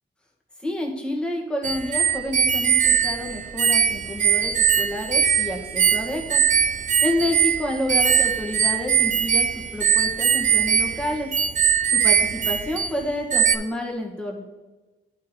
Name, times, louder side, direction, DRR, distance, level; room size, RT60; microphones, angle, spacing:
voice 1, 0.6-6.4 7.0-11.3 11.9-14.4, left 1 dB, 5° left, -1 dB, 1.8 m, -29 dB
sound 1, 1.6-13.0 13.3-13.6, right 7 dB, 40° right, 0.6 m, -21 dB
11.0 x 3.7 x 4.5 m, 1.2 s
cardioid pair, 90°, 20 cm